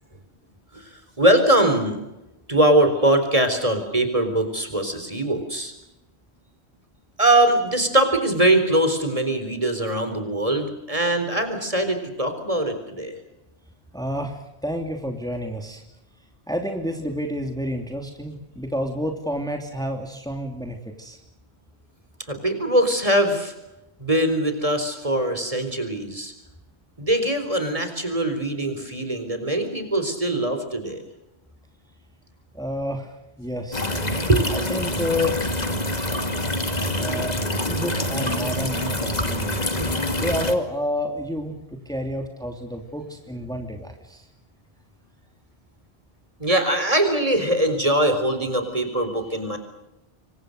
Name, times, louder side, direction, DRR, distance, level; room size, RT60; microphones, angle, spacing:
voice 1, 1.2-2.0 2.5-5.7 7.2-13.2 22.3-23.5 24.0-26.3 27.0-31.0 34.3-34.5 36.7-37.2 37.9-38.2 39.5-40.0 46.4-49.6, right 1 dB, 35° right, 8 dB, 4.2 m, -22 dB
voice 2, 13.9-14.3 14.6-15.8 16.5-21.2 32.5-33.1 33.4-33.9 34.5-35.4 37.0-37.3 37.6-39.6 40.2-41.5 41.9-44.2, equal, 5° left, 3 dB, 2.8 m, -29 dB
sound 1, 33.7-40.5, left 1 dB, 40° left, 2.3 m, -26 dB
27.0 x 24.0 x 6.6 m, 0.93 s
omnidirectional pair, 1.1 m